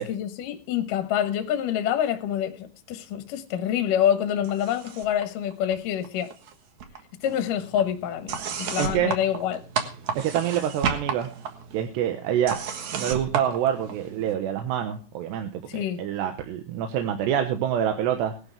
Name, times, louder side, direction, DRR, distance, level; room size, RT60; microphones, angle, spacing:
voice 1, 0.0-6.3 7.2-9.6 15.7-16.0, left 10 dB, 65° left, 2.3 m, -26 dB
sound 1, 4.4-5.2 5.5-6.5 6.8-14.3, right 6 dB, 60° right, 2.1 m, -33 dB
voice 2, 8.8-9.2 10.2-11.3 11.7-12.6 12.9-18.3, right 10 dB, 75° right, 3.2 m, -26 dB
18.5 x 11.5 x 3.5 m
omnidirectional pair, 5.1 m